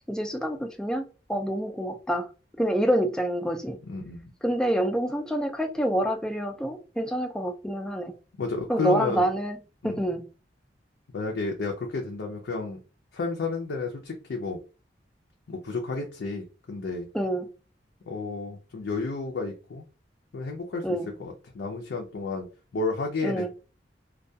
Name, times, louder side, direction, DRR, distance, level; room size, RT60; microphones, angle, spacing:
voice 1, 0.1-1.0 1.3-2.3 2.6-3.8 4.4-8.1 8.7-9.6 9.8-10.2 17.1-17.5 20.8-21.1 23.2-23.5, right 1 dB, 5° left, 0.3 m, -27 dB
voice 2, 3.9-4.3 8.4-9.2 9.8-10.1 11.1-12.8 13.1-14.6 15.5-17.1 18.1-19.8 20.3-22.5 22.7-23.5, left 3 dB, 70° left, 0.4 m, -32 dB
2.2 x 2.2 x 2.6 m
head